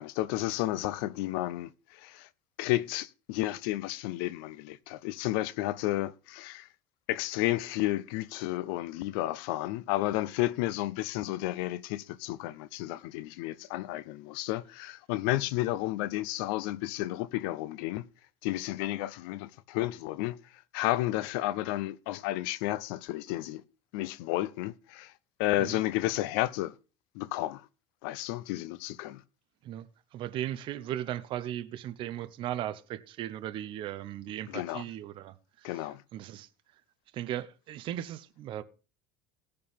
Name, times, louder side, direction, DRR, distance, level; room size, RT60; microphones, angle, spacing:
voice 1, 0.0-2.3 2.6-6.7 7.1-18.0 18.4-20.4 20.7-23.6 23.9-25.1 25.4-26.7 27.1-27.7 28.0-29.2 34.5-34.8 35.6-36.0, left 16 dB, 80° left, 0.6 m, -32 dB
voice 2, 30.1-36.5 37.1-38.6, right 12 dB, 45° right, 0.7 m, -37 dB
17.0 x 6.8 x 3.6 m
cardioid pair, 140°, 12 cm